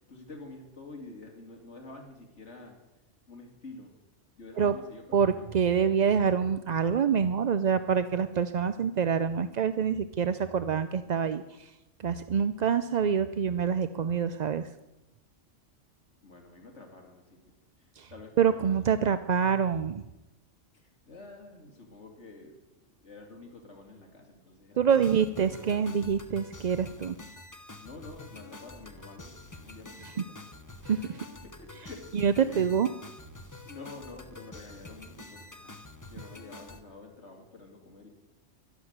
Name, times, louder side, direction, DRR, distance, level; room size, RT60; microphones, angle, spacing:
voice 1, 0.0-2.8 3.3-3.9 4.4-5.5 16.2-17.4 17.8-19.0 20.7-22.6 23.0-24.8 25.1-25.6 27.6-30.5 31.0-32.0 32.4-32.7 33.6-35.7 36.1-38.1, left 3 dB, 65° left, 2 dB, 2.8 m, -48 dB
voice 2, 5.1-11.7 12.0-14.7 18.0-18.1 18.4-20.0 24.8-27.2 30.8-31.3 32.1-32.9, right 7 dB, 50° right, 11 dB, 0.5 m, -26 dB
sound 1, 24.9-36.8, left 2 dB, 15° left, 0.8 m, -47 dB
12.0 x 11.5 x 8.0 m, 0.97 s
omnidirectional pair, 1.3 m